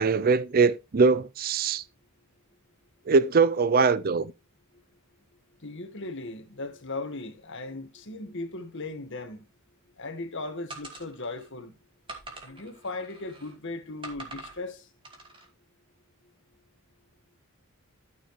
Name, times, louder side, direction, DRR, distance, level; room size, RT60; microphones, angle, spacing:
voice 1, 0.0-1.8 3.1-4.3, right 4 dB, 45° right, 0.5 m, -22 dB
voice 2, 5.6-9.5 10.0-11.7 12.4-14.9, left 2 dB, 60° left, 1.7 m, -37 dB
sound 1, 10.7-11.5 12.1-13.6 14.0-14.6 15.0-15.5, right 2 dB, 25° right, 2.5 m, -44 dB
12.5 x 6.8 x 3.2 m
head